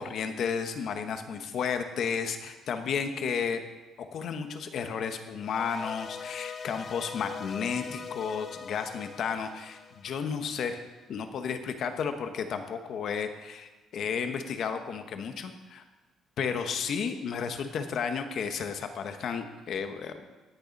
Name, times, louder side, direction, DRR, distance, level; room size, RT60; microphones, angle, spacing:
voice 1, 0.0-3.6 4.0-10.8 11.1-15.8 16.4-20.4, left 6 dB, 45° left, 7 dB, 1.0 m, -33 dB
sound 1, 5.4-10.7, left 6 dB, 30° left, 0.3 m, -42 dB
17.5 x 6.8 x 5.3 m, 1.2 s
cardioid pair, 170°, 0 cm